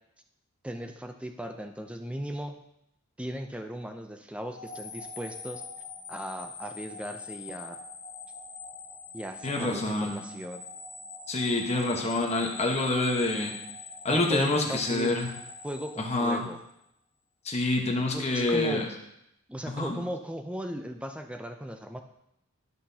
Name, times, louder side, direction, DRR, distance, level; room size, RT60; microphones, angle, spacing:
voice 1, 0.6-2.6 3.2-5.6 6.1-7.8 9.1-10.6 14.1-15.1 15.6-16.6 18.1-18.9 19.5-22.0, equal, 5° right, 5 dB, 0.5 m, -37 dB
sound 1, 4.5-16.7, left 4 dB, 50° left, 1.7 m, -44 dB
voice 2, 9.4-10.2 11.3-13.5 14.0-15.3 16.0-16.4 17.4-18.8 19.7-20.0, left 2 dB, 30° left, 1 dB, 1.2 m, -27 dB
12.5 x 5.8 x 2.8 m, 0.82 s
head